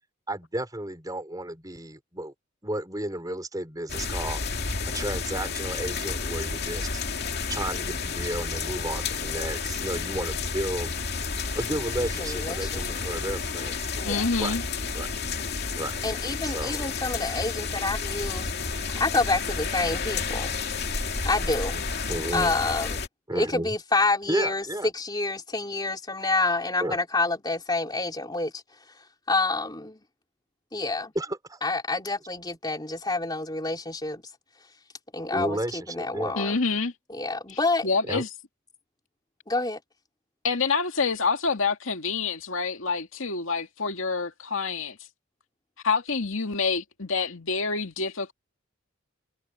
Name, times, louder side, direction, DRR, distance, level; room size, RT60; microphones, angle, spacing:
voice 1, 0.3-2.3 2.6-4.4 4.9-7.0 7.5-10.9 11.5-14.0 14.4-14.6 14.9-15.1 15.8-16.0 16.4-16.9 22.1-22.5 23.3-23.7 24.3-24.9 26.8-27.0 31.1-31.6 35.3-36.4 38.1-38.2, right 1 dB, 20° right, 4.6 m, -33 dB
sound 1, 3.9-23.1, left 4 dB, 50° left, 2.5 m, -31 dB
voice 2, 12.2-12.9 14.0-14.3 16.0-20.6 21.2-21.8 22.3-23.0 23.3-28.6 29.3-30.0 30.7-31.1 31.6-34.2 35.1-36.6 37.1-37.9 39.5-39.8, left 3 dB, 20° left, 3.5 m, -28 dB
voice 3, 14.0-14.6 36.4-36.9 37.5-37.6 37.8-38.3 40.4-45.0 45.8-48.3, left 4 dB, 80° left, 2.2 m, -27 dB
head